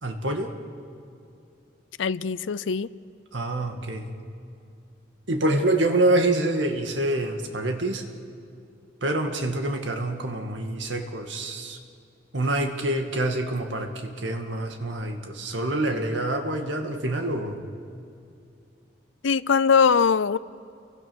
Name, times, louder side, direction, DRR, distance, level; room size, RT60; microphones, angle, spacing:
voice 1, 0.0-0.5 3.3-4.1 5.3-8.0 9.0-11.8 12.3-17.6, right 1 dB, 75° right, 4 dB, 2.1 m, -26 dB
voice 2, 2.0-2.9 19.2-20.4, left 6 dB, 85° left, 18 dB, 0.5 m, -21 dB
30.0 x 23.0 x 6.3 m, 2.5 s
head